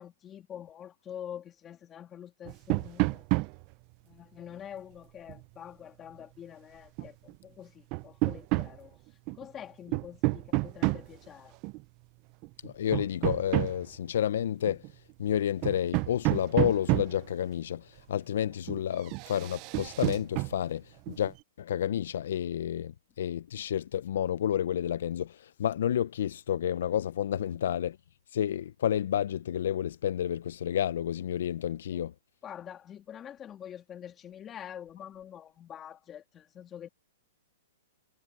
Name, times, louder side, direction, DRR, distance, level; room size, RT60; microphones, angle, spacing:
voice 1, 0.0-3.3 4.0-9.0 9.3-11.6 27.4-27.6 31.9-32.0 32.4-36.9, left 9 dB, 20° left, 2.7 m, -46 dB
sound 1, 2.5-3.7 5.3-5.4 7.0-7.3 7.9-8.8 9.3-9.5 9.9-11.2 11.6-11.8 12.4-14.0 14.7-14.9 15.3-15.4 15.6-17.3 18.4-18.8 19.1-20.6 21.1-21.3, right 24 dB, 35° right, 0.7 m, -29 dB
voice 2, 12.6-14.8 15.2-28.0 28.3-32.1, left 10 dB, 70° left, 0.6 m, -30 dB
hypercardioid pair, 145°, 0 cm